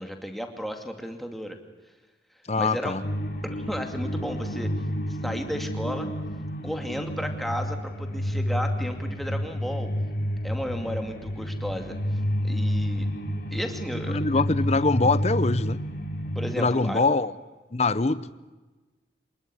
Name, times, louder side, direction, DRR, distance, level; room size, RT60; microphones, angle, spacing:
voice 1, 0.0-1.6 2.5-3.0 3.4-4.7 5.2-6.1 6.6-9.9 10.4-12.0 12.4-13.1 13.5-14.2 16.3-17.0, equal, ahead, 4 dB, 2.4 m, -33 dB
voice 2, 2.5-3.0 14.1-15.8 16.6-17.3 17.7-18.3, left 3 dB, 35° left, 15 dB, 0.8 m, -23 dB
sound 1, 3.0-16.5, equal, 55° left, 2.9 m, -30 dB
26.0 x 20.0 x 9.9 m, 1.2 s
head